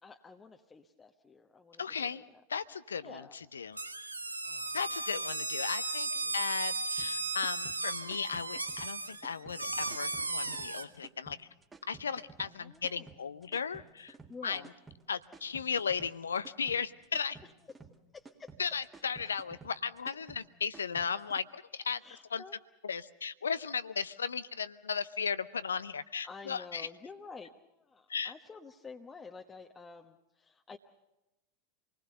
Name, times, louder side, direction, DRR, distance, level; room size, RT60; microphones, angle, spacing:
voice 1, 0.0-2.4 3.0-3.4 4.4-5.1 6.2-6.5 9.1-9.3 12.4-13.1 14.3-14.7 17.4-17.5 18.1-18.5 22.0-22.6 26.2-30.8, left 4 dB, 15° left, 3 dB, 1.1 m, -50 dB
voice 2, 1.8-4.1 4.7-11.5 11.9-14.2 14.4-14.6 15.1-17.4 18.6-22.0 22.3-22.4 22.8-26.9 28.1-28.3, left 6 dB, 75° left, 16 dB, 0.7 m, -36 dB
sound 1, 3.8-10.9, right 3 dB, 85° right, 0.9 m, -36 dB
sound 2, 7.0-21.4, right 4 dB, 15° right, 1.9 m, -54 dB
27.0 x 20.0 x 6.8 m, 0.98 s
figure-of-eight pair, 85°, 0 cm